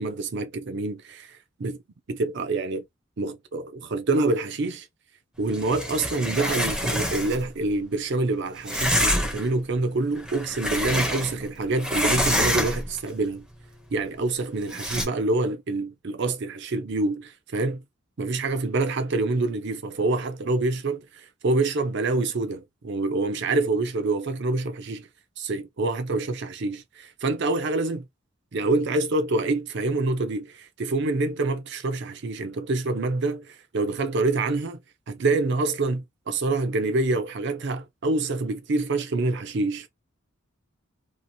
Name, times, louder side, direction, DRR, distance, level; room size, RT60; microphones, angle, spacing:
voice 1, 0.0-1.8 2.1-2.8 3.2-4.9 5.4-13.5 13.9-17.8 18.2-25.1 25.4-28.1 28.5-34.8 35.1-39.9, right 2 dB, 55° right, 0.5 m, -26 dB
sound 1, 5.5-7.5 8.7-9.5 10.2-11.5 11.8-13.0 14.7-15.1, equal, 5° right, 0.6 m, -26 dB
2.8 x 2.5 x 2.6 m
head